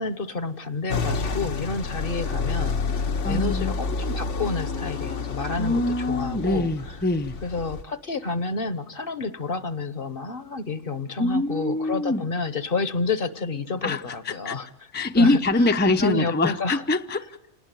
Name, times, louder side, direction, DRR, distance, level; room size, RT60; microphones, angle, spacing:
voice 1, 0.0-6.7 7.4-14.7 15.1-15.7 16.0-16.8, left 3 dB, 50° left, 13 dB, 1.2 m, -30 dB
sound 1, 0.9-7.8, left 4 dB, 75° left, 1.5 m, -29 dB
voice 2, 3.2-3.8 5.6-7.3 11.2-12.3 13.8-14.6 14.9-17.2, left 2 dB, 10° left, 6 dB, 0.7 m, -24 dB
28.0 x 19.0 x 9.0 m, 0.97 s
omnidirectional pair, 1.2 m